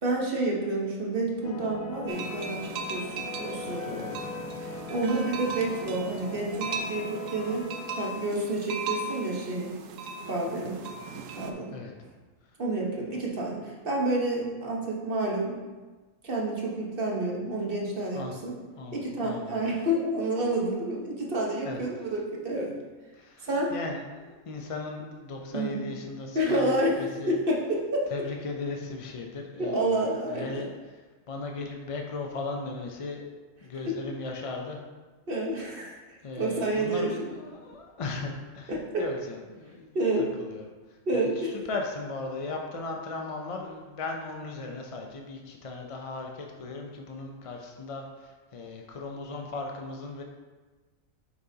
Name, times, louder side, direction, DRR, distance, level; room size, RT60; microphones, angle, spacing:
voice 1, 0.0-4.2 4.6-7.7 7.9-9.7 10.3-10.8 11.3-11.8 12.6-15.6 16.2-18.5 18.9-22.7 23.4-23.7 25.5-25.8 26.3-28.1 29.6-30.6 33.8-33.9 35.3-37.3 38.7-39.0 39.9-40.3 41.1-41.5, right 1 dB, 45° right, -2 dB, 1.2 m, -29 dB
sound 1, 1.4-8.1, left 4 dB, 90° left, 1.0 m, -41 dB
sound 2, 2.1-11.5, right 3 dB, 70° right, 1.0 m, -38 dB
voice 2, 3.9-4.2 11.7-11.9 18.1-18.4 18.8-19.6 21.6-21.8 23.1-26.7 27.0-27.3 28.1-33.3 33.6-34.8 36.2-40.0 40.4-50.2, left 3 dB, 55° left, 2 dB, 0.4 m, -37 dB
7.6 x 5.8 x 2.8 m, 1.3 s
omnidirectional pair, 1.4 m